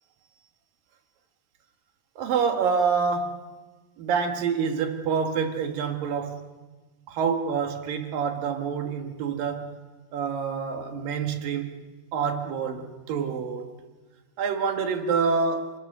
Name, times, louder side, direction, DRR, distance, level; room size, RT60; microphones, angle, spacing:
voice 1, 2.2-3.5 4.0-6.5 7.1-9.8 10.1-11.7 12.1-13.7 14.4-15.7, right 6 dB, 70° right, 3.3 m, -27 dB
29.5 x 20.0 x 6.8 m
omnidirectional pair, 4.2 m